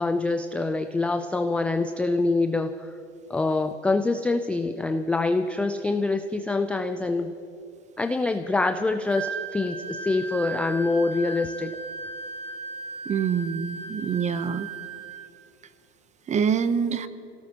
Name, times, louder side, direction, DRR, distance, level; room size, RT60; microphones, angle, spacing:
voice 1, 0.0-2.9 3.3-7.3 8.0-11.7, left 3 dB, 5° left, 6 dB, 0.3 m, -25 dB
Wind instrument woodwind instrument, 9.1-15.3, right 4 dB, 55° right, 3.8 m, -37 dB
voice 2, 13.1-14.7 16.3-17.1, right 7 dB, 20° right, 13 dB, 0.7 m, -25 dB
27.0 x 17.5 x 2.9 m, 2.6 s
hypercardioid pair, 105°, 34 cm